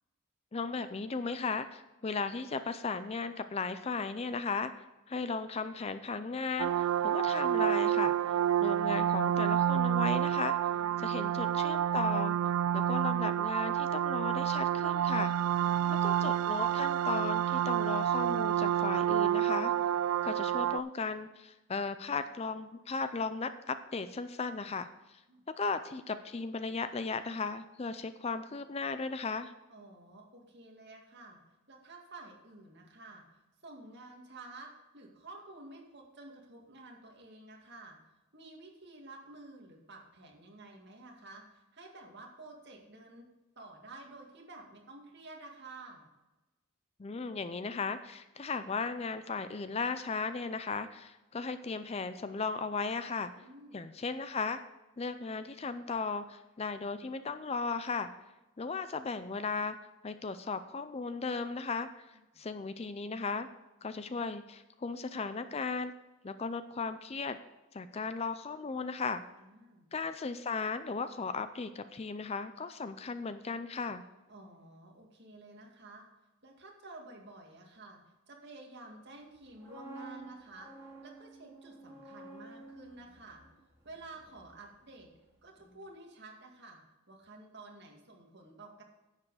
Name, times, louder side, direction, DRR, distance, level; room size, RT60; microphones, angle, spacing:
voice 1, 0.5-4.7 5.1-10.7 11.0-12.3 12.7-15.3 15.6-15.7 16.0-19.7 20.2-25.2 25.6-29.5 47.0-53.3 53.7-54.6 55.0-58.1 58.6-59.8 60.0-62.1 62.4-63.5 63.8-65.9 66.2-67.4 67.7-69.2 69.9-74.0, left 4 dB, 25° left, 11 dB, 0.4 m, -36 dB
sound 1, 6.6-20.8, right 10 dB, 90° right, 0.3 m, -29 dB
voice 2, 10.7-11.0 25.3-25.4 29.7-31.4 31.7-33.2 33.6-38.0 38.3-43.3 43.6-46.1 53.4-53.8 62.1-62.2 69.4-69.9 74.3-76.1 76.4-78.0 78.3-80.7 81.0-83.4 83.8-85.1 85.4-86.8 87.1-88.8, right 2 dB, 50° right, 1 dB, 2.1 m, -51 dB
sound 2, 79.3-85.3 85.6-85.8, right 2 dB, 10° right, 3.3 m, -52 dB
10.5 x 7.5 x 4.9 m, 1.1 s
head